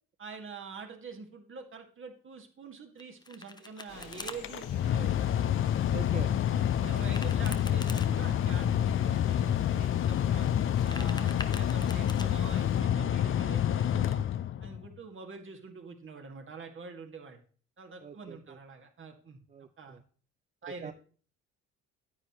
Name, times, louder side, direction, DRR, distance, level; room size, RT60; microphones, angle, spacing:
voice 1, 0.2-5.3 6.8-10.5 10.8-14.2 14.6-17.4 17.8-19.4 19.8-20.0 20.6-20.9, right 4 dB, 40° right, 4 dB, 1.9 m, -45 dB
Domestic sounds home sounds, 3.0-4.4 6.9-8.1 10.6-12.3, left 3 dB, 15° left, 0.8 m, -44 dB
sound 1, 3.9-12.8, left 6 dB, 85° left, 1.5 m, -48 dB
Mechanical fan, 4.3-14.9, left 10 dB, 45° left, 0.5 m, -28 dB
voice 2, 5.9-6.3 18.0-18.6 19.5-20.0 20.8-20.9, right 6 dB, 25° right, 12 dB, 0.4 m, -44 dB
9.6 x 8.6 x 3.0 m, 0.42 s
supercardioid pair, 70°, 30 cm